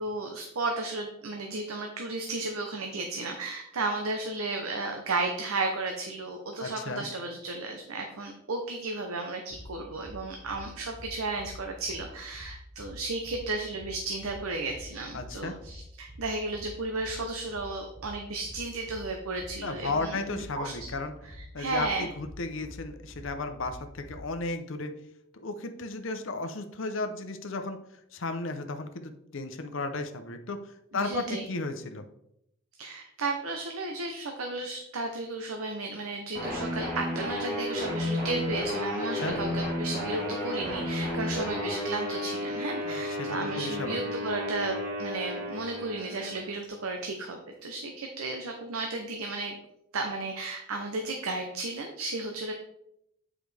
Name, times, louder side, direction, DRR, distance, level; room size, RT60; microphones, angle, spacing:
voice 1, 0.0-20.7 21.2-22.1 30.9-31.5 32.8-49.6 49.9-52.5, right 2 dB, 85° right, 3 dB, 0.8 m, -34 dB
voice 2, 6.6-7.1 15.1-15.6 19.6-21.1 21.5-24.9 25.3-27.8 28.1-32.0 39.2-39.4 42.8-44.0, left 3 dB, 65° left, 7 dB, 0.7 m, -34 dB
sound 1, 9.5-24.3, left 1 dB, 10° right, 1.2 m, -46 dB
sound 2, 36.3-46.6, left 1 dB, 45° right, 2.5 m, -33 dB
8.2 x 4.9 x 3.4 m, 0.78 s
head